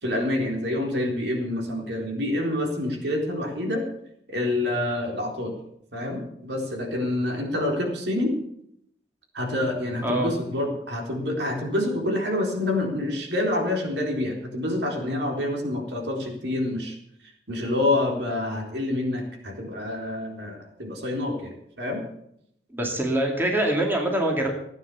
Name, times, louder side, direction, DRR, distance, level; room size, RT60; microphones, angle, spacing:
voice 1, 0.0-3.9 4.3-5.6 5.9-8.3 9.3-17.0 17.5-22.0, left 1 dB, 75° right, 1 dB, 4.0 m, -27 dB
voice 2, 22.7-24.5, right 1 dB, 10° right, 1 dB, 2.4 m, -24 dB
16.0 x 9.4 x 7.1 m, 0.73 s
head